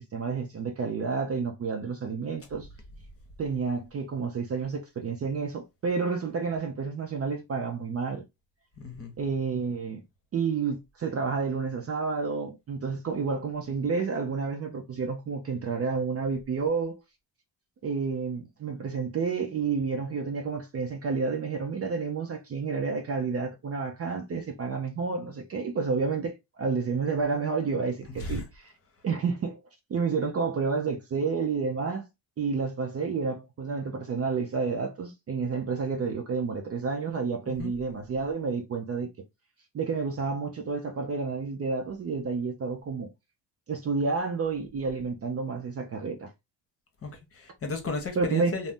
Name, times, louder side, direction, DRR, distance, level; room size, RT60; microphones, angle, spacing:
voice 1, 0.0-2.7 3.4-8.2 9.2-10.0 10.3-17.0 17.8-28.7 29.0-29.6 29.9-32.0 32.4-39.1 39.7-43.1 43.7-46.3 48.2-48.5, right 5 dB, 35° right, 0.5 m, -30 dB
voice 2, 8.8-9.1 28.2-28.4 37.5-37.7 47.0-48.7, left 3 dB, 30° left, 0.9 m, -34 dB
2.6 x 2.1 x 3.5 m
cardioid pair, 90°, 43 cm